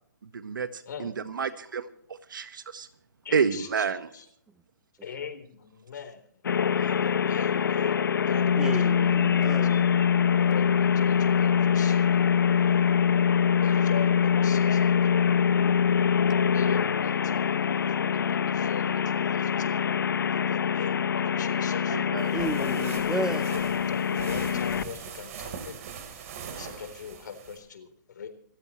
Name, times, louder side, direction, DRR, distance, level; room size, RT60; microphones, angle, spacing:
voice 1, 0.2-2.9 3.3-4.1 21.9-22.3, right 6 dB, 80° right, 1.5 m, -30 dB
voice 2, 3.2-3.8 4.1-4.3 5.0-6.2 6.7-9.7 10.4-12.2 12.6-12.8 13.6-15.4 16.5-20.0 20.3-22.0 22.2-22.4 22.8-25.8 26.5-28.3, left 7 dB, 65° left, 3.9 m, -41 dB
sound 1, 6.4-24.8, left 7 dB, 80° left, 1.0 m, -24 dB
voice 3, 8.6-10.0 12.6-13.6 15.7-15.8 22.3-23.5 23.8-23.9, right 3 dB, 5° right, 0.5 m, -35 dB
sound 2, 22.2-27.6, right 6 dB, 45° right, 4.1 m, -41 dB
27.0 x 13.5 x 3.2 m
hypercardioid pair, 150°, 11 cm